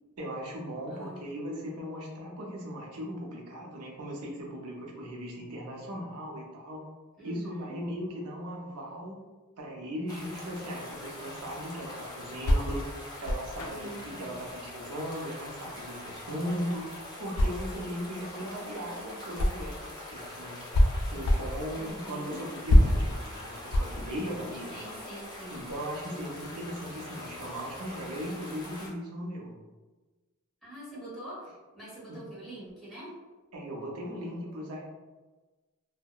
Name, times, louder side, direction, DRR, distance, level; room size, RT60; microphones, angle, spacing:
voice 1, 0.2-6.8 7.2-9.2 9.6-12.8 13.2-16.9 17.2-20.6 21.1-24.7 25.5-29.5 32.1-32.2 33.5-34.8, equal, 85° right, -1 dB, 0.6 m, -38 dB
voice 2, 0.9-1.3 7.2-7.8 13.6-14.4 21.7-22.4 24.7-25.6 26.1-26.3 30.6-33.1 34.1-34.6, right 1 dB, ahead, -10 dB, 1.0 m, -45 dB
sound 1, 10.1-28.9, left 1 dB, 20° left, 0.4 m, -43 dB
sound 2, 11.5-19.9 20.2-25.0, left 1 dB, 80° left, 0.4 m, -27 dB
2.7 x 2.0 x 2.3 m, 1.2 s
head